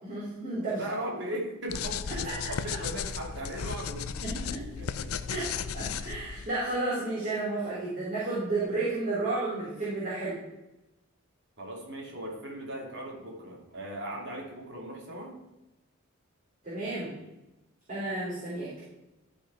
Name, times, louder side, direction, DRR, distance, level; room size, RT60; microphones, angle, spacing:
voice 1, 0.0-0.8 2.2-2.3 2.6-2.7 4.3-4.4 5.3-5.5 5.7-10.4 16.6-17.1 17.9-18.7, right 2 dB, 35° right, -10 dB, 3.6 m, -32 dB
voice 2, 0.7-5.1 11.6-15.3, right 1 dB, 55° right, -2 dB, 2.7 m, -38 dB
sound 1, 1.7-6.5, left 7 dB, 85° left, 0.5 m, -35 dB
13.5 x 5.2 x 4.8 m, 0.98 s
head